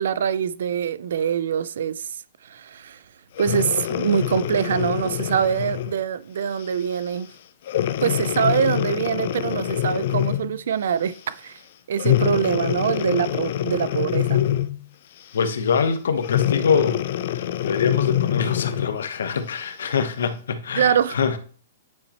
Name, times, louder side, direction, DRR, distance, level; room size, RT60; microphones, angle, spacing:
voice 1, 0.0-2.1 2.4-3.0 3.4-7.3 8.0-11.6 11.9-14.4 20.8-21.2, right 8 dB, 75° right, 0.4 m, -24 dB
Breathing, 3.3-6.0 6.6-6.8 7.7-10.5 12.0-14.8 16.2-19.0 19.6-19.7, left 12 dB, 55° left, 0.5 m, -25 dB
voice 2, 15.3-17.1 17.3-21.4, left 6 dB, 90° left, 0.9 m, -24 dB
9.4 x 4.3 x 2.9 m
hypercardioid pair, 160°, 0 cm